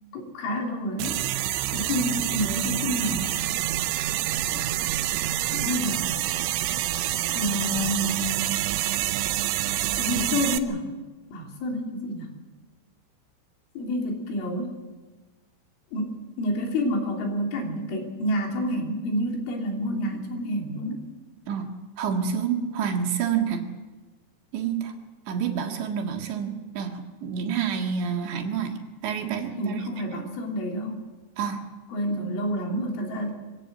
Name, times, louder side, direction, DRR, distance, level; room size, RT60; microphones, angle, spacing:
voice 1, 0.1-1.3 1.7-3.3 4.5-4.6 5.5-6.2 7.3-8.5 10.0-10.9 11.3-12.3 13.8-14.8 15.9-21.1 29.6-31.1 31.9-33.3, equal, 80° left, 1 dB, 5.6 m, -29 dB
sound 1, 1.0-10.6, right 14 dB, 85° right, 3.3 m, -27 dB
voice 2, 22.0-23.6 24.5-24.9 25.3-28.7 29.0-29.8 31.4-31.6, right 7 dB, 70° right, 3 dB, 3.9 m, -28 dB
24.0 x 16.5 x 7.7 m, 1.3 s
omnidirectional pair, 5.5 m